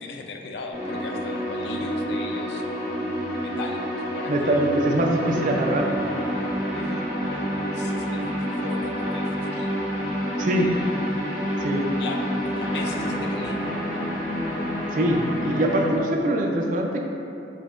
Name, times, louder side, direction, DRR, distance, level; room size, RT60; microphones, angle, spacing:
voice 1, 0.0-3.0 3.4-4.7 6.7-7.4 7.7-9.9 10.5-10.9 12.0-12.3 12.5-13.6, left 3 dB, 65° left, 3 dB, 0.3 m, -38 dB
sound 1, 0.7-15.9, equal, 45° left, 1.3 m, -28 dB
voice 2, 4.3-5.9 10.4-10.7 11.6-11.8 14.9-17.0, right 1 dB, 45° right, 1 dB, 0.3 m, -23 dB
5.0 x 2.8 x 2.3 m, 2.8 s
head